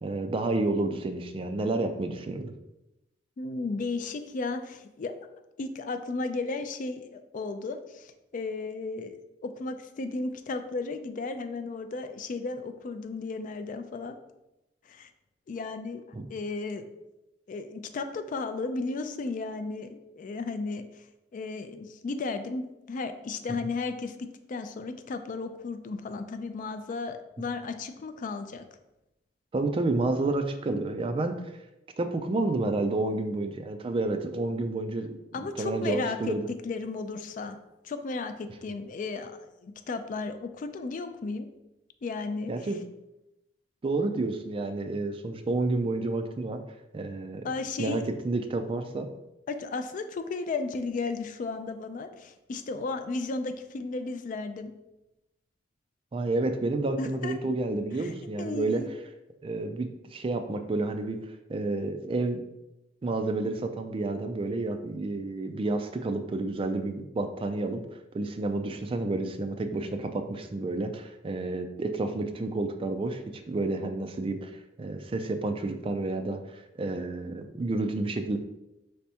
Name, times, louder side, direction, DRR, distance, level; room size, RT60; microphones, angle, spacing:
voice 1, 0.0-2.5 16.1-16.3 29.5-31.4 32.0-36.5 42.5-42.8 43.8-46.6 46.9-47.5 47.8-49.1 56.1-58.8 59.4-61.2 61.5-62.4 63.0-67.8 68.1-74.5 74.8-78.4, right 2 dB, 30° right, 7 dB, 0.3 m, -30 dB
voice 2, 3.4-5.1 5.6-9.2 9.4-14.2 14.9-15.1 15.5-16.9 17.5-20.8 21.3-28.6 35.3-37.6 37.8-41.5 42.0-42.7 47.4-48.0 49.5-54.7 57.0-57.3 58.0-58.9, left 3 dB, 45° left, 8 dB, 0.3 m, -34 dB
5.1 x 3.4 x 2.8 m, 0.93 s
head